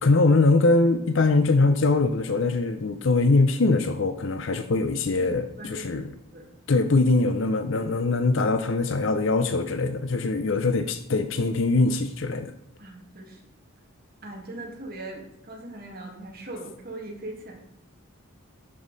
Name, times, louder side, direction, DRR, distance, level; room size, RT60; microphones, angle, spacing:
voice 1, 0.0-6.1 6.7-12.5, left 3 dB, 60° left, 9 dB, 0.6 m, -22 dB
voice 2, 5.2-6.5 12.8-13.4 14.2-17.7, right 1 dB, 45° right, 0 dB, 2.1 m, -40 dB
11.5 x 5.4 x 4.0 m, 0.77 s
head